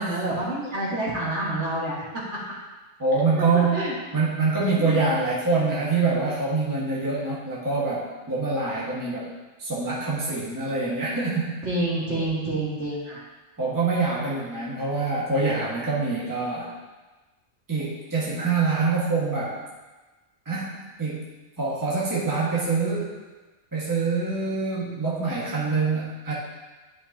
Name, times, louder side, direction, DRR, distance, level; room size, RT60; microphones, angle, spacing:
voice 1, 0.0-2.0 3.7-3.9 4.8-5.1 11.6-13.2, right 1 dB, 55° right, -8 dB, 2.5 m, -28 dB
voice 2, 3.0-3.8 4.1-9.3 9.6-11.6 13.6-16.7 17.7-19.6 20.4-21.2 21.6-23.1 23.7-26.3, right 3 dB, 15° right, -7 dB, 1.5 m, -25 dB
12.0 x 5.2 x 2.8 m, 1.2 s
omnidirectional pair, 1.4 m